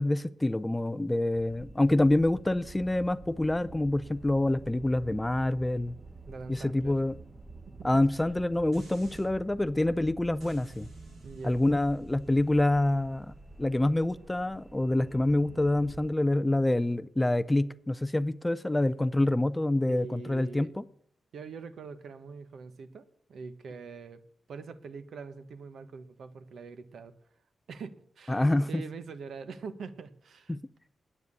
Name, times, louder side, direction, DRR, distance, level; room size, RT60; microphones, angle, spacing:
voice 1, 0.0-5.9 6.5-7.2 7.8-10.9 11.4-13.3 13.6-20.8 28.3-28.8 30.5-30.6, left 1 dB, 10° left, 0.4 m, -26 dB
sound 1, 1.3-16.1, right 3 dB, 20° right, 0.8 m, -49 dB
voice 2, 6.3-7.0 7.7-8.0 11.2-11.6 19.9-20.7 21.3-24.2 24.5-27.2 27.7-30.6, right 5 dB, 75° right, 1.1 m, -43 dB
sound 2, 8.7-9.3 10.4-15.6 16.0-16.1, right 1 dB, 50° right, 6.8 m, -52 dB
9.8 x 9.2 x 8.2 m
wide cardioid pair, 145°, 0 cm